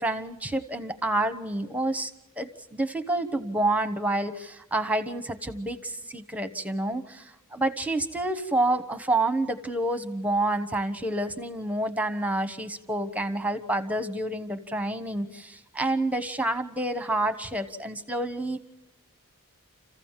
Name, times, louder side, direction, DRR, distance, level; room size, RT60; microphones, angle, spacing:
voice 1, 0.0-2.1 2.4-18.6, right 2 dB, 5° right, 11 dB, 1.0 m, -28 dB
28.0 x 15.5 x 7.3 m, 0.96 s
head